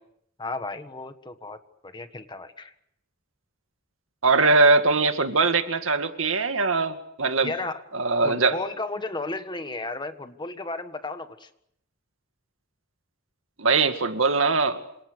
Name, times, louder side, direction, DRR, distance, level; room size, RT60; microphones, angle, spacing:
voice 1, 0.4-1.6 1.8-2.7 7.4-7.8 8.2-11.5, left 2 dB, 20° left, 9 dB, 1.6 m, -34 dB
voice 2, 4.2-7.5 7.9-8.6 13.6-14.8, right 3 dB, 80° right, 8 dB, 2.1 m, -21 dB
27.5 x 27.0 x 6.5 m, 0.74 s
head